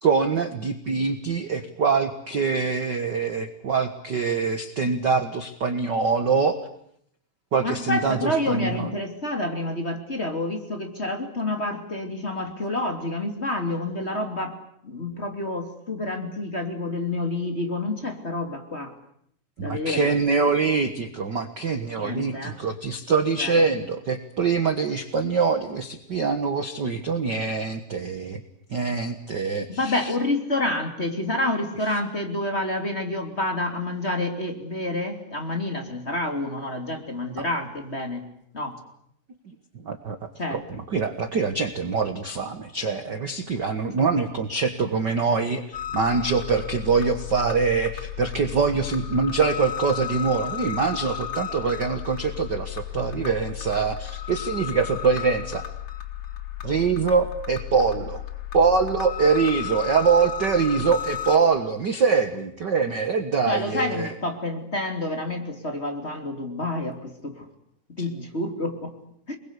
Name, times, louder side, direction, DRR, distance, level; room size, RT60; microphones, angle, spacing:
voice 1, 0.0-6.6 7.5-8.9 19.6-28.4 28.7-30.1 39.5-40.2 40.5-55.6 56.6-58.2 58.5-64.1, right 5 dB, 50° right, 8 dB, 1.3 m, -24 dB
voice 2, 7.6-14.6 14.8-18.9 19.6-20.2 22.0-22.6 23.4-23.6 29.7-38.2 38.5-38.8 40.4-40.6 63.5-67.4 68.0-68.9 69.3-69.4, left 2 dB, 20° left, 4 dB, 2.8 m, -28 dB
sound 1, 45.7-61.4, left 11 dB, 40° left, 2.4 m, -34 dB
29.5 x 21.5 x 8.3 m, 0.70 s
omnidirectional pair, 4.1 m